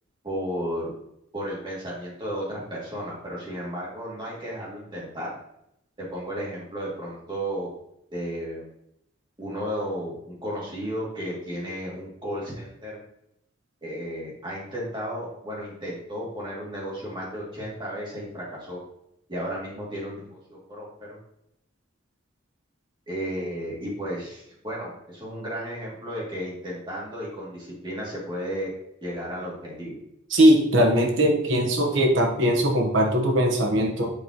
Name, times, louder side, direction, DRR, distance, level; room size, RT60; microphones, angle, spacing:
voice 1, 0.2-0.9 1.3-5.4 6.0-7.7 8.1-8.7 9.4-13.0 13.8-18.8 19.3-21.2 23.1-28.7 29.0-30.0, equal, 25° right, -5 dB, 2.5 m, -33 dB
voice 2, 30.3-34.1, equal, 80° right, 1 dB, 1.2 m, -20 dB
6.9 x 5.3 x 3.0 m, 0.77 s
head